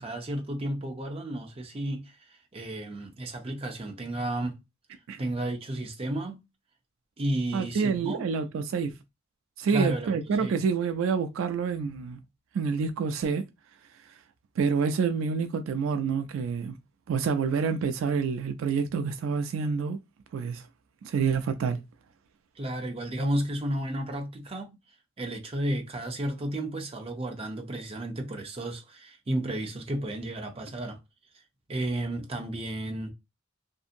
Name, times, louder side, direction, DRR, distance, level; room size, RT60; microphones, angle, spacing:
voice 1, 0.0-2.1 2.5-4.6 5.2-6.4 7.2-8.2 9.7-10.6 22.6-24.8 25.2-31.0 31.7-33.1, right 1 dB, 30° right, 0.6 m, -32 dB
voice 2, 7.5-9.0 9.6-12.2 12.5-13.4 14.6-16.7 17.1-20.0 20.3-20.6 21.0-21.8, right 5 dB, 75° right, 0.3 m, -27 dB
2.6 x 2.6 x 2.4 m
head